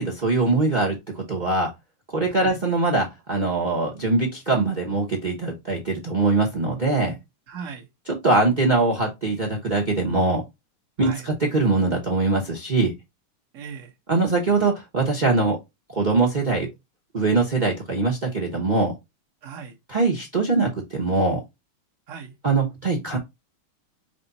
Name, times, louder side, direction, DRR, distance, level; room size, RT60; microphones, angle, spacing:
voice 1, 0.0-1.7 2.1-7.2 8.1-10.4 11.0-12.9 14.1-15.6 15.9-16.7 17.1-18.9 19.9-21.4 22.4-23.2, right 3 dB, 80° right, 0.4 m, -22 dB
voice 2, 2.3-2.6 7.5-7.9 11.0-11.3 13.5-13.9 19.4-19.8 22.1-22.3, right 6 dB, 50° right, 1.0 m, -37 dB
5.0 x 2.2 x 3.9 m
omnidirectional pair, 2.4 m